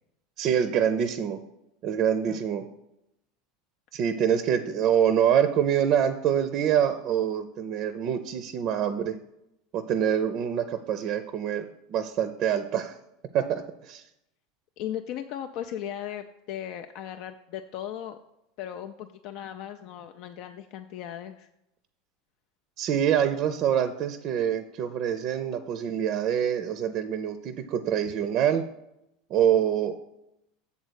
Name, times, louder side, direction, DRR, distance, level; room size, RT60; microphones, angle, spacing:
voice 1, 0.4-1.4 1.8-2.7 3.9-9.1 9.7-11.6 11.9-13.0 13.3-14.0 22.8-28.6 29.3-30.0, right 9 dB, 50° right, 10 dB, 0.5 m, -25 dB
voice 2, 14.8-18.2 18.6-21.5, left 10 dB, 60° left, 7 dB, 0.4 m, -37 dB
7.2 x 4.0 x 6.4 m, 0.85 s
hypercardioid pair, 100°, 0 cm